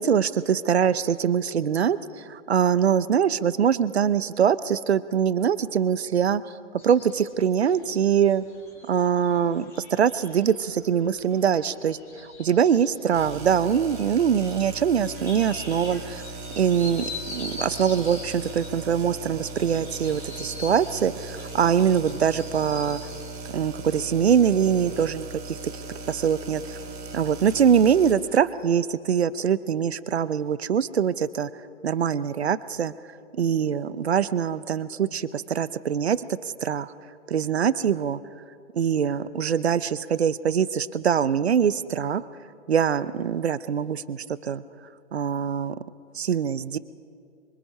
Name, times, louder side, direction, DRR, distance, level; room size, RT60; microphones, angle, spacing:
voice 1, 0.0-6.6 6.8-8.4 8.9-16.2 16.6-23.0 23.5-25.8 26.1-26.8 27.1-32.9 33.4-36.9 37.3-38.2 38.7-42.2 42.7-44.6 45.1-45.8 46.1-46.8, right 8 dB, 55° right, 15 dB, 0.8 m, -23 dB
sound 1, 6.8-23.4, left 3 dB, 5° left, 1.5 m, -44 dB
sound 2, 13.1-28.1, right 3 dB, 15° right, 1.8 m, -38 dB
25.0 x 24.5 x 5.6 m, 2.4 s
hypercardioid pair, 170°, 39 cm